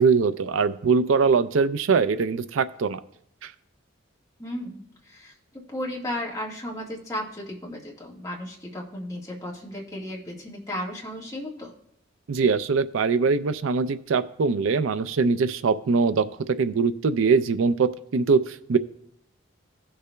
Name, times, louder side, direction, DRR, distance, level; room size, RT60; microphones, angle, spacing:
voice 1, 0.0-3.0 3.4-3.5 12.3-16.3 16.6-18.8, right 5 dB, 80° right, 13 dB, 0.4 m, -22 dB
voice 2, 4.4-11.7, left 1 dB, 15° left, -3 dB, 1.5 m, -35 dB
16.5 x 6.7 x 2.2 m, 0.71 s
head